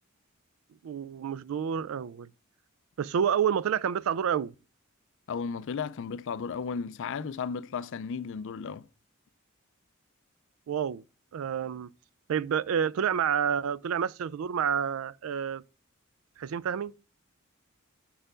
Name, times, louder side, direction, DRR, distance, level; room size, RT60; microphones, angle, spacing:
voice 1, 0.8-2.3 3.0-4.5 10.7-11.0 11.3-11.9 12.3-15.6 16.4-16.9, right 8 dB, 75° right, 0.3 m, -29 dB
voice 2, 5.3-8.9, left 6 dB, 65° left, 0.4 m, -34 dB
5.7 x 4.4 x 4.9 m
head